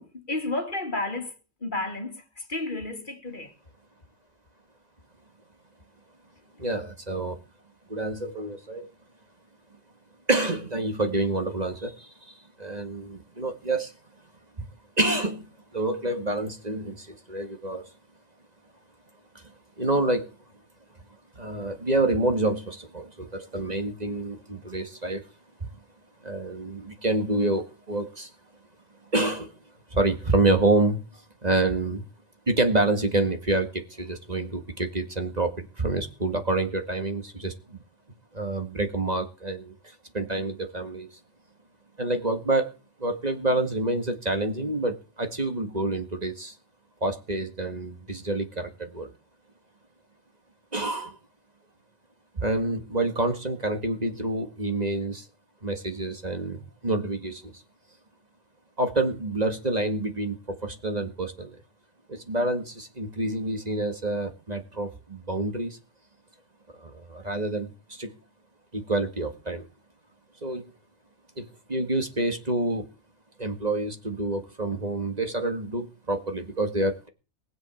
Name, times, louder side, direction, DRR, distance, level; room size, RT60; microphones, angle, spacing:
voice 1, 0.0-1.3 1.6-3.5, left 2 dB, 45° left, 2.0 m, -32 dB
voice 2, 6.6-7.4 7.9-8.9 10.3-13.9 14.6-14.7 15.0-17.9 19.4-19.5 19.8-20.3 21.3-25.2 25.6-25.7 26.2-28.3 29.1-29.5 29.9-31.0 31.4-32.0 32.5-37.8 38.3-39.7 40.1-41.1 42.0-42.7 43.0-46.5 47.0-49.1 50.7-51.2 52.4-55.3 55.6-57.6 58.8-61.6 62.1-65.8 66.8-68.1 68.7-69.7 70.4-70.6 71.4-72.9 73.4-77.1, right 2 dB, 35° right, 2.0 m, -27 dB
20.0 x 8.0 x 7.3 m
omnidirectional pair, 1.2 m